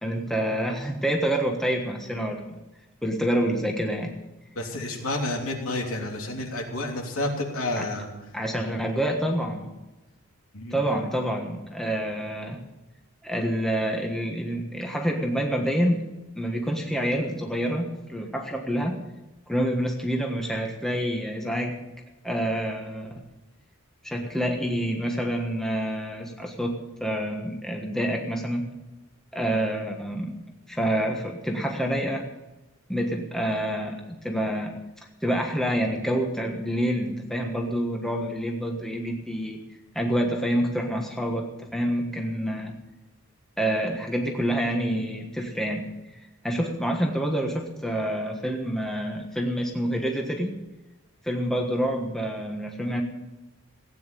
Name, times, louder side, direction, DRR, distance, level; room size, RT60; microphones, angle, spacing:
voice 1, 0.0-2.6 3.0-4.1 7.8-7.9 8.3-9.7 10.7-12.6 13.2-16.0 16.3-19.0 19.5-21.8 22.2-23.2 24.0-28.6 29.3-30.3 30.7-32.3 32.9-34.7 35.2-39.6 39.9-42.8 43.6-50.6 51.2-53.0, equal, ahead, 1 dB, 1.4 m, -27 dB
voice 2, 4.5-8.1 10.5-10.9, left 2 dB, 70° left, 1 dB, 3.1 m, -30 dB
16.5 x 9.5 x 6.8 m, 1.0 s
head